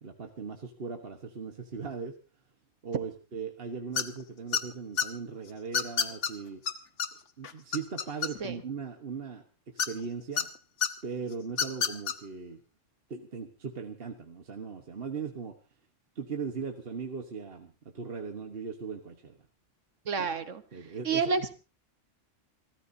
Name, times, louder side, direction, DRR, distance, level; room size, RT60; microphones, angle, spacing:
voice 1, 0.0-2.1 2.8-6.6 7.4-10.5 11.0-12.6 13.1-15.5 16.1-19.4 20.2-20.3 20.7-21.2, right 5 dB, 50° right, 4 dB, 1.4 m, -39 dB
sound 1, 4.0-4.2 4.5-5.1 5.7-6.3 6.7-6.8 7.0-7.1 7.4-8.6 9.8-10.4 10.8-10.9 11.5-12.1, left 7 dB, 70° left, 1.3 m, -28 dB
voice 2, 20.1-20.6 21.0-21.5, right 5 dB, 70° right, 10 dB, 1.5 m, -29 dB
29.0 x 14.0 x 2.7 m, 0.32 s
omnidirectional pair, 1.3 m